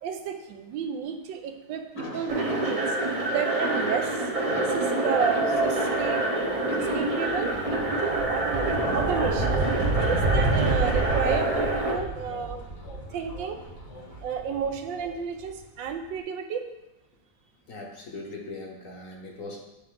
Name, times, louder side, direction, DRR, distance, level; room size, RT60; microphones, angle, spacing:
voice 1, 0.0-3.0 3.2-4.2 4.7-6.4 6.8-7.6 8.0-9.6 9.9-12.6 13.1-13.6 14.2-16.7, right 7 dB, 85° right, 6 dB, 1.4 m, -32 dB
voice 2, 2.0-2.4 12.2-12.3 17.7-19.6, left 2 dB, 55° left, -1 dB, 1.1 m, -39 dB
sound 1, 2.3-11.9, right 2 dB, 40° right, 0.5 m, -26 dB
sound 2, 5.9-6.2 6.5-15.4, right 2 dB, 65° right, 1.5 m, -30 dB
sound 3, 10.0-15.2, left 1 dB, 85° left, 3.2 m, -48 dB
9.8 x 3.5 x 3.7 m, 1.0 s
omnidirectional pair, 2.0 m